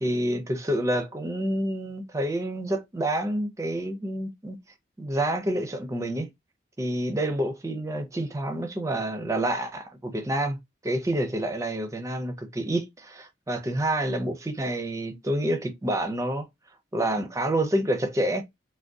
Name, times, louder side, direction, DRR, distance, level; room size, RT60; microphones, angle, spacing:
voice 1, 0.0-4.6 5.0-6.3 6.8-10.6 10.8-16.5 16.9-18.4, right 1 dB, 15° right, 0.4 m, -28 dB
3.4 x 2.2 x 2.6 m
head